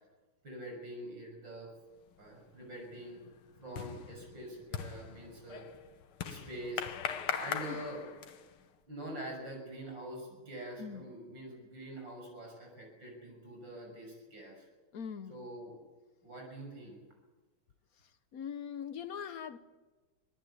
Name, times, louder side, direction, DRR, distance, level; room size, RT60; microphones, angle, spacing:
voice 1, 0.4-1.7 2.2-3.2 3.6-5.7 6.2-6.9 7.3-8.0 8.9-14.6 15.3-15.8 16.2-17.0, right 1 dB, 60° right, 1 dB, 6.9 m, -45 dB
sound 1, 2.1-2.5 2.8-8.6, left 8 dB, 85° left, 2.1 m, -40 dB
voice 2, 10.8-11.1 14.9-15.5 18.3-19.6, left 7 dB, 55° left, 12 dB, 1.1 m, -41 dB
25.5 x 18.0 x 8.3 m, 1.2 s
omnidirectional pair, 2.3 m